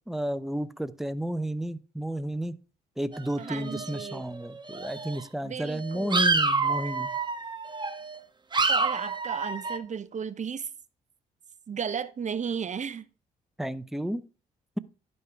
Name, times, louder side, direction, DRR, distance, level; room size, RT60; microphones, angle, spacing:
voice 1, 0.1-2.6 3.0-7.1 13.6-14.2, right 1 dB, ahead, 0.7 m, -32 dB
sound 1, 3.1-4.4 4.7-5.2 5.7-8.2 8.5-9.8, right 3 dB, 25° right, 1.1 m, -28 dB
voice 2, 3.4-4.2 5.4-6.3 8.7-10.7 11.7-13.1, right 7 dB, 40° right, 0.7 m, -34 dB
11.0 x 5.5 x 4.6 m
supercardioid pair, 65°, 18 cm